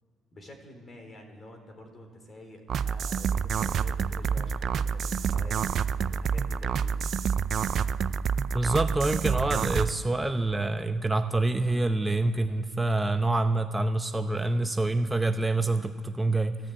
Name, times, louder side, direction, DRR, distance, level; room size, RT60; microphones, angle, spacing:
voice 1, 0.3-6.9, left 1 dB, 40° left, 5 dB, 3.7 m, -48 dB
sound 1, 2.7-9.9, right 7 dB, 60° right, 0.5 m, -28 dB
voice 2, 8.5-16.6, right 2 dB, 15° right, 8 dB, 0.8 m, -26 dB
14.0 x 12.0 x 8.8 m, 2.4 s
supercardioid pair, 70°, 0 cm